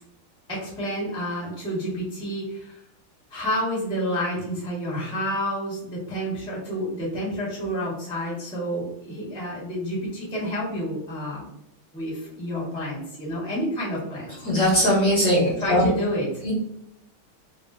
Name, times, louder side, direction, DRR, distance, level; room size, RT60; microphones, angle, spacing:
voice 1, 0.5-2.8 3.3-11.5 11.9-14.3 15.6-16.5, equal, 5° left, -6 dB, 0.5 m, -29 dB
voice 2, 14.4-15.9 16.4-16.5, equal, 55° left, -6 dB, 1.1 m, -20 dB
3.5 x 2.4 x 2.4 m, 0.81 s
omnidirectional pair, 2.4 m